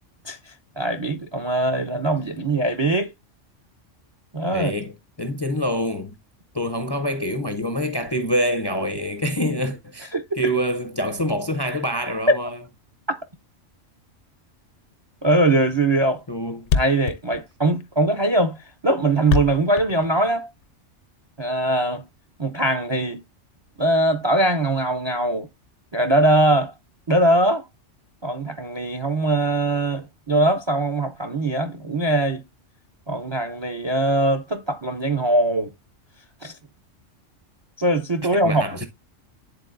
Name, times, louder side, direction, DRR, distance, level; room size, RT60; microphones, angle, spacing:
voice 1, 0.2-3.1 4.3-4.7 10.1-10.4 13.1-13.3 15.2-16.2 16.7-18.6 18.8-20.5 21.4-22.0 22.4-23.2 23.8-25.5 25.9-26.7 27.1-27.7 28.2-32.4 33.1-35.7 36.4-36.6 37.8-38.9, right 1 dB, 35° right, 0.4 m, -21 dB
voice 2, 4.5-4.9 5.2-6.1 6.5-12.6 16.3-16.7 38.3-38.9, equal, 30° left, 0.5 m, -26 dB
Thump thud, 15.8-15.9 16.1-16.2 16.4-16.5 16.6-20.7, left 6 dB, 70° left, 0.9 m, -26 dB
10.5 x 3.9 x 2.5 m
omnidirectional pair, 1.3 m